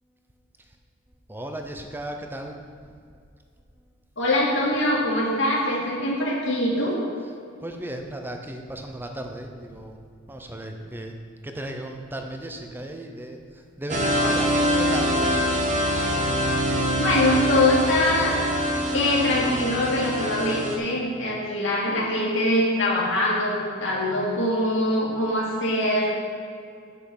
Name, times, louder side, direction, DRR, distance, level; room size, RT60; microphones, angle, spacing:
voice 1, 1.3-2.6 7.2-7.3 7.6-10.0 10.3-11.1 11.4-15.5, right 1 dB, 10° right, 4 dB, 0.7 m, -35 dB
voice 2, 4.2-7.0 17.0-18.4 18.9-26.1, left 1 dB, 60° left, -5 dB, 2.3 m, -23 dB
sound 1, 13.9-20.8, equal, 35° right, 1.1 m, -24 dB
7.7 x 6.9 x 6.3 m, 2.3 s
head